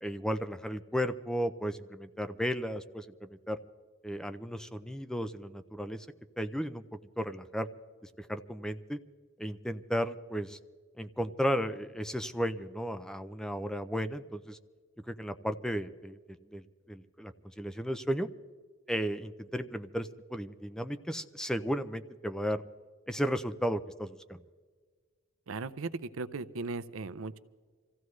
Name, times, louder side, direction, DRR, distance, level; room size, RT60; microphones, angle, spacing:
voice 1, 0.0-3.6 4.0-6.1 6.4-6.8 7.2-7.7 8.2-9.0 9.4-10.6 11.0-14.6 15.1-16.2 16.5-18.3 18.9-22.6 23.1-24.4, equal, 5° left, 10 dB, 0.5 m, -34 dB
voice 2, 25.5-27.4, right 3 dB, 75° right, 15 dB, 0.6 m, -37 dB
26.0 x 15.5 x 3.2 m, 1.5 s
head